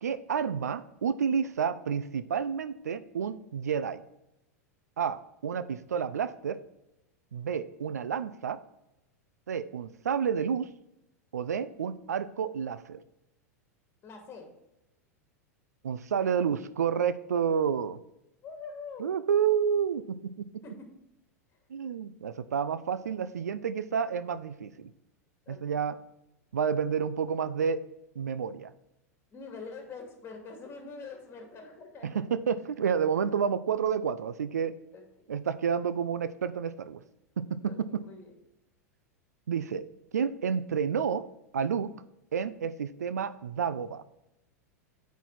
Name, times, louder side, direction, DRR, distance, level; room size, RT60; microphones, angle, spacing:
voice 1, 0.0-4.0 5.0-6.6 7.3-8.6 9.5-10.7 11.3-13.0 15.8-18.0 19.0-20.2 21.7-24.9 25.5-26.0 26.5-27.8 28.2-28.7 32.0-34.7 35.3-37.0 37.4-38.0 39.5-39.8 40.1-41.2 41.5-41.9 42.3-44.0, right 7 dB, 80° right, 14 dB, 0.5 m, -30 dB
voice 2, 14.0-14.5 18.4-19.1 20.6-20.9 25.5-25.8 29.3-32.1 34.9-35.0 37.6-38.3, left 4 dB, 30° left, 2 dB, 2.4 m, -44 dB
8.9 x 4.6 x 4.1 m, 0.89 s
hypercardioid pair, 95°, 9 cm